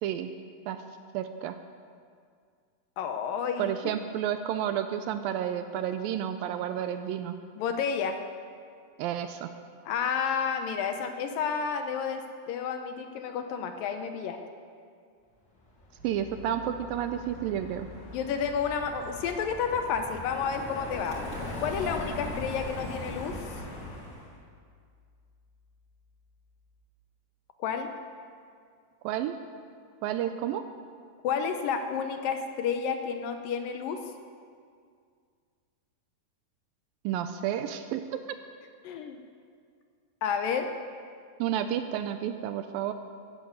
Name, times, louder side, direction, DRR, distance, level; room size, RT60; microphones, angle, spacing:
voice 1, 1.1-1.6 3.6-7.4 9.0-9.5 16.0-17.9 29.0-29.4 30.0-30.6 37.0-38.2 41.4-42.9, right 10 dB, 80° right, 9 dB, 2.2 m, -31 dB
voice 2, 3.0-3.7 7.6-8.2 9.9-14.4 18.1-21.2 21.6-23.3 27.6-27.9 31.2-34.0 38.8-39.2 40.2-40.7, left 6 dB, 75° left, 6 dB, 2.3 m, -30 dB
Car passing by, 15.8-24.3, left 1 dB, 35° left, 2.6 m, -40 dB
Piano, 16.0-26.8, left 5 dB, 60° right, 6.1 m, -53 dB
14.0 x 11.5 x 8.2 m, 2.2 s
omnidirectional pair, 4.5 m